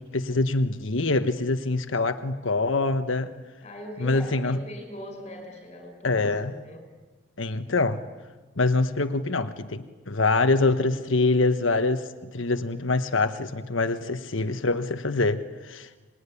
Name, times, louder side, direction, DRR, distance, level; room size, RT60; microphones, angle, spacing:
voice 1, 0.0-3.3 4.0-4.6 6.0-6.5 7.4-8.0 8.6-16.0, left 3 dB, 85° left, 1.3 m, -25 dB
voice 2, 3.6-6.3 6.6-6.8, left 1 dB, 35° left, 6.3 m, -40 dB
26.5 x 21.5 x 9.9 m
head